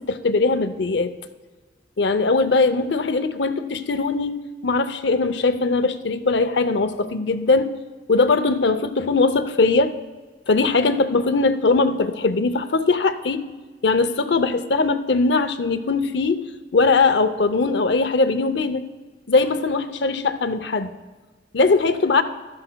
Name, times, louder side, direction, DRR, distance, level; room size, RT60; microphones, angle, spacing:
voice 1, 0.1-1.1 2.0-7.8 8.1-9.9 10.5-13.5 13.8-16.5 16.7-18.9 19.3-20.9 21.5-22.2, left 3 dB, 65° left, 11 dB, 0.6 m, -20 dB
15.5 x 12.5 x 2.2 m, 1.3 s
head